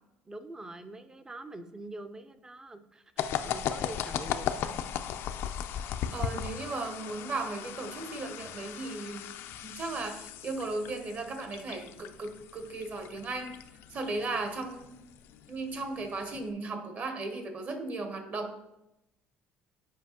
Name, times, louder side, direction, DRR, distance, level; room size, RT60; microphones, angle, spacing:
voice 1, 0.3-5.1, right 2 dB, 15° right, 10 dB, 0.4 m, -45 dB
sound 1, 3.2-16.5, left 9 dB, 70° left, 0.4 m, -38 dB
voice 2, 6.1-9.2 9.6-13.6 13.9-14.9 15.5-18.6, right 3 dB, 40° right, 6 dB, 0.9 m, -36 dB
7.3 x 4.8 x 2.8 m, 0.90 s
cardioid pair, 115°, 4 cm